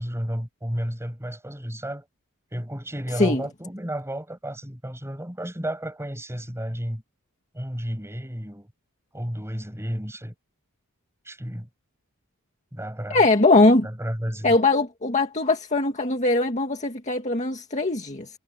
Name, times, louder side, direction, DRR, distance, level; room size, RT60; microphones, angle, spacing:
voice 1, 0.0-2.1 2.5-7.0 7.5-8.7 9.1-10.3 11.2-11.7 12.7-13.3 13.8-14.6, equal, 10° right, 6.2 m, -32 dB
voice 2, 13.1-13.9 14.4-18.3, left 2 dB, 35° left, 2.0 m, -21 dB
head